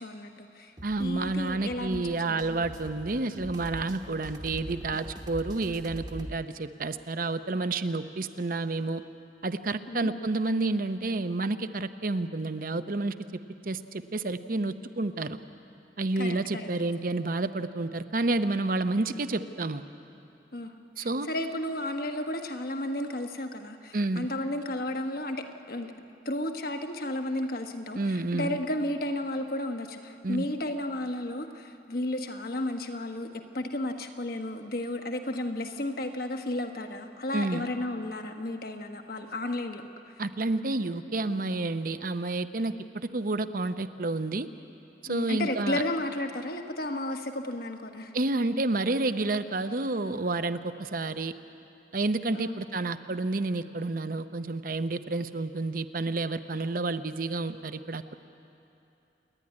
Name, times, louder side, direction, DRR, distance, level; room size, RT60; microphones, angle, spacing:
voice 1, 0.0-0.7 1.0-2.6 9.9-10.1 16.2-16.7 20.5-25.9 26.2-39.8 45.1-48.1 52.3-52.7, left 1 dB, 55° left, 5 dB, 1.3 m, -33 dB
sound 1, 0.8-6.4, equal, 25° right, 1.2 m, -43 dB
voice 2, 0.8-9.0 9.4-13.1 13.6-15.4 16.0-19.8 21.0-21.3 23.9-24.3 27.9-28.6 30.2-30.5 37.3-37.7 40.2-44.5 45.0-45.8 48.1-51.3 51.9-58.1, right 2 dB, 50° right, 10 dB, 0.7 m, -30 dB
28.5 x 11.0 x 9.8 m, 2.9 s
head